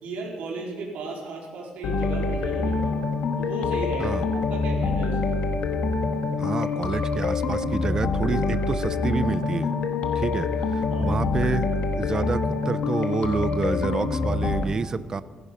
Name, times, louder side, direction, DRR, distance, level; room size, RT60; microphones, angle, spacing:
voice 1, 0.0-3.0 3.4-5.4 10.9-11.1, right 3 dB, 85° right, -1 dB, 4.0 m, -35 dB
sound 1, 1.8-14.6, left 4 dB, 70° left, 1.6 m, -26 dB
voice 2, 6.4-9.7 10.1-11.7 11.9-15.2, right 4 dB, 30° right, 15 dB, 0.6 m, -28 dB
16.0 x 15.0 x 5.6 m, 1.5 s
cardioid pair, 145°, 2 cm